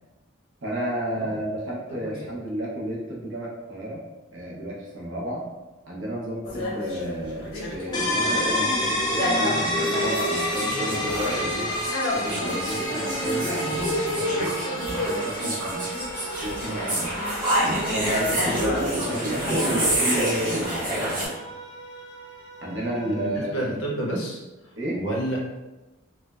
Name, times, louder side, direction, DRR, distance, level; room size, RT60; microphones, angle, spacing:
voice 1, 0.6-4.0 4.3-5.5 5.8-11.7 12.1-15.9 16.4-17.1 17.6-20.7 22.6-23.7 24.8-25.0, right 1 dB, 65° right, -4 dB, 0.7 m, -32 dB
sound 1, 6.4-15.5 15.9-20.0, left 1 dB, 90° left, 0.9 m, -30 dB
sound 2, 7.9-23.5, equal, 20° left, 0.4 m, -30 dB
sound 3, 9.6-21.3, right 1 dB, 25° right, 1.1 m, -29 dB
voice 2, 23.1-24.4 24.9-25.4, right 1 dB, 70° left, -2 dB, 0.7 m, -29 dB
3.3 x 2.0 x 2.3 m, 1.1 s
head